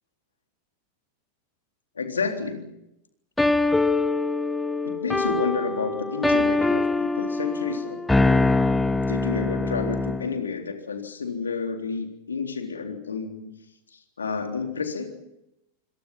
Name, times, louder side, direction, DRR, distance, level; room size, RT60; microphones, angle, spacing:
voice 1, 2.0-2.7 4.8-8.0 9.1-13.5 13.9-15.1, left 5 dB, 70° left, 4 dB, 3.7 m, -30 dB
sound 1, 3.4-10.3, left 2 dB, 5° left, 1.6 m, -23 dB
27.5 x 25.0 x 5.6 m, 0.84 s
figure-of-eight pair, 90°, 0 cm